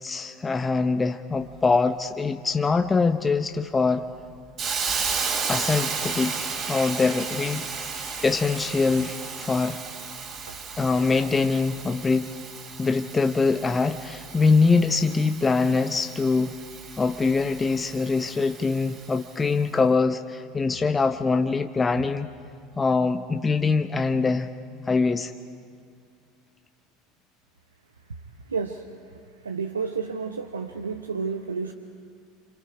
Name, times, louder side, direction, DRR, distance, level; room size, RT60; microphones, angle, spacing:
voice 1, 0.0-4.0 5.5-6.4 6.7-7.7 8.2-9.8 10.8-12.3 12.8-16.5 17.0-22.3 22.8-24.5 24.8-25.3, left 4 dB, 20° left, 8 dB, 0.8 m, -23 dB
Hiss, 4.6-19.4, right 5 dB, 40° right, 3.3 m, -34 dB
voice 2, 28.5-29.0 29.4-31.7, right 5 dB, 85° right, 5 dB, 0.8 m, -31 dB
28.0 x 27.0 x 5.0 m, 2.3 s
figure-of-eight pair, 75°, 0 cm